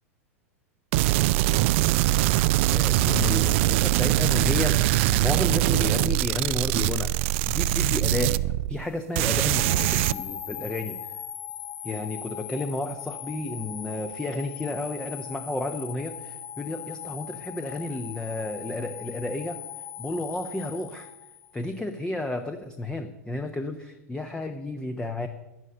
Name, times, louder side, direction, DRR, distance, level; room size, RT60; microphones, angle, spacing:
sound 1, 0.9-8.9 9.2-10.1, right 16 dB, 50° right, 0.4 m, -23 dB
voice 1, 2.7-4.9 5.2-8.4 8.7-11.0 11.8-19.6 20.0-21.1 21.5-25.3, left 2 dB, 10° left, 7 dB, 0.8 m, -32 dB
sound 2, 9.6-21.8, left 9 dB, 45° left, 1.2 m, -39 dB
11.0 x 11.0 x 6.7 m, 0.99 s
figure-of-eight pair, 95°, 8 cm